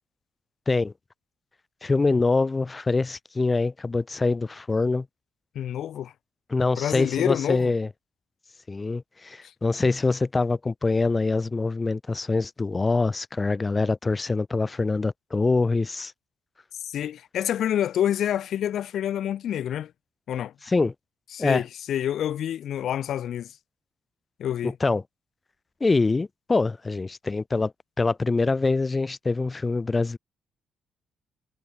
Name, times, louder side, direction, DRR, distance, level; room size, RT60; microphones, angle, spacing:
voice 1, 1.8-5.1 6.5-7.9 8.7-16.1 20.7-20.9 21.4-21.6 24.6-25.0 25.8-27.7 28.0-30.2, left 3 dB, 25° left, 1.7 m, -24 dB
voice 2, 5.6-6.1 6.8-7.7 16.8-19.9 20.3-20.5 21.3-23.6 24.4-24.7, left 10 dB, 70° left, 3.5 m, -27 dB
cardioid pair, 90°, 0 cm